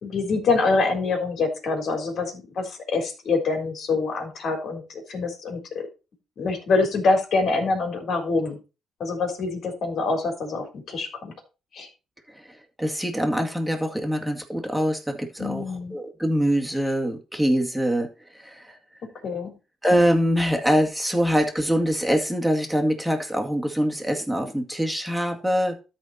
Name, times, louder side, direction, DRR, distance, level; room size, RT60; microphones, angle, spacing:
voice 1, 0.0-5.8 6.4-8.6 9.0-11.3 11.7-11.9 15.4-15.9 19.2-19.5, left 3 dB, 60° left, 3 dB, 3.7 m, -25 dB
voice 2, 12.3-18.8 19.8-25.8, equal, ahead, 3 dB, 2.1 m, -24 dB
13.0 x 4.4 x 4.2 m, 0.31 s
cardioid pair, 90°, 0 cm